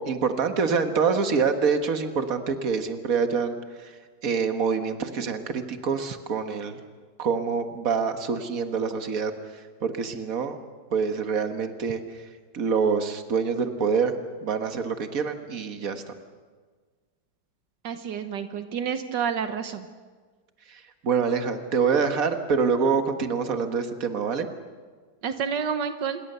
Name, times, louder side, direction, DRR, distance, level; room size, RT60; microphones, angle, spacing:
voice 1, 0.0-3.6 4.2-6.8 7.2-9.3 9.8-10.6 10.9-12.0 12.5-14.1 14.4-16.0 21.0-24.5, right 5 dB, 55° right, 7 dB, 2.0 m, -25 dB
voice 2, 17.8-19.9 25.2-26.2, right 7 dB, 85° right, 9 dB, 1.7 m, -29 dB
27.0 x 21.5 x 6.9 m, 1.5 s
omnidirectional pair, 1.9 m